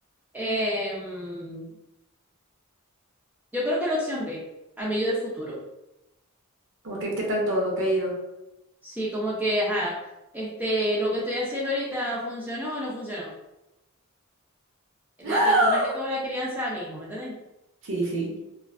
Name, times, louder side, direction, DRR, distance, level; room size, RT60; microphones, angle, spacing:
voice 1, 0.3-1.7 3.5-4.4 4.8-5.6 8.8-10.0 10.3-13.3 15.2-17.3, equal, 10° right, -6 dB, 0.4 m, -29 dB
voice 2, 6.8-8.2 15.2-16.0 17.8-18.3, right 1 dB, 60° right, -1 dB, 0.7 m, -24 dB
2.4 x 2.3 x 2.3 m, 0.93 s
head